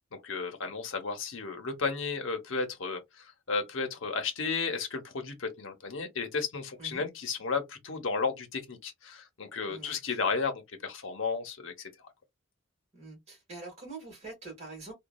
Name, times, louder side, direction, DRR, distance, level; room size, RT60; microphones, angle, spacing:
voice 1, 0.2-11.9, left 4 dB, 70° left, 0.8 m, -33 dB
voice 2, 9.7-10.2 12.9-14.9, right 3 dB, 30° right, 1.5 m, -45 dB
3.0 x 2.3 x 2.2 m
head